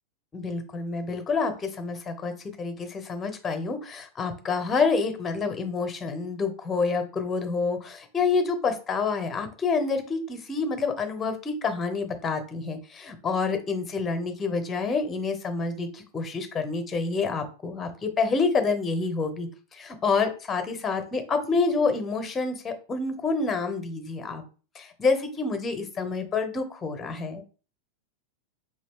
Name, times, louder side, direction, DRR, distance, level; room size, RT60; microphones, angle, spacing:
voice 1, 0.3-2.3 2.6-24.4 24.7-27.4, left 4 dB, 20° left, 7 dB, 0.8 m, -28 dB
4.6 x 2.6 x 3.6 m, 0.37 s
figure-of-eight pair, 90°, 0 cm